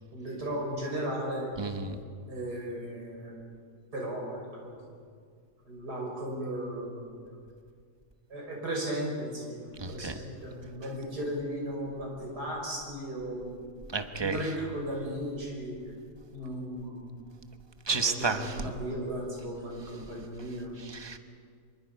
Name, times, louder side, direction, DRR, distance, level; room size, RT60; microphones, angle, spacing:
voice 1, 0.1-1.5 2.3-3.4 3.9-4.8 5.7-7.3 8.3-13.6 14.2-15.8 16.3-17.0 17.9-20.7, right 1 dB, 85° right, -2 dB, 6.4 m, -36 dB
voice 2, 1.6-2.0 9.8-10.2 13.9-14.4 17.9-18.7 20.9-21.2, right 4 dB, 20° right, 7 dB, 1.0 m, -31 dB
25.5 x 23.5 x 5.4 m, 2.1 s
omnidirectional pair, 1.7 m